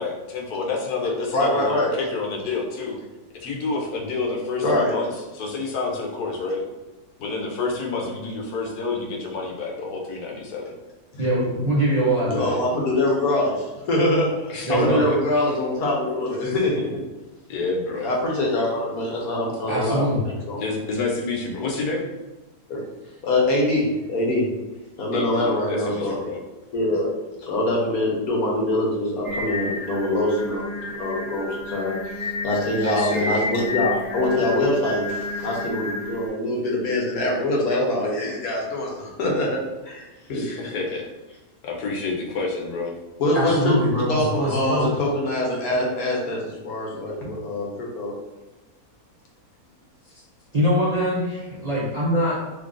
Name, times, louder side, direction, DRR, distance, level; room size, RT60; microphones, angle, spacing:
voice 1, 0.0-3.0 3.3-5.1 5.3-6.6 7.2-10.7 14.5-15.1 17.5-18.1 20.6-22.1 25.1-26.4 32.8-33.4 40.3-41.0 41.6-42.9, left 3 dB, 90° left, 0 dB, 1.3 m, -28 dB
voice 2, 1.3-1.9 4.6-5.0 12.3-17.0 18.0-20.6 22.7-22.8 23.2-24.5 25.0-26.2 26.7-27.1 27.4-40.5 43.2-43.8 44.1-48.1, left 1 dB, 75° left, -3 dB, 1.3 m, -24 dB
voice 3, 11.2-12.5 14.6-15.0 19.7-20.2 43.3-45.0 50.5-52.4, equal, 40° right, -8 dB, 0.6 m, -23 dB
Singing, 29.2-36.3, left 2 dB, 45° left, 0.4 m, -30 dB
3.2 x 2.5 x 3.6 m, 1.1 s
omnidirectional pair, 1.6 m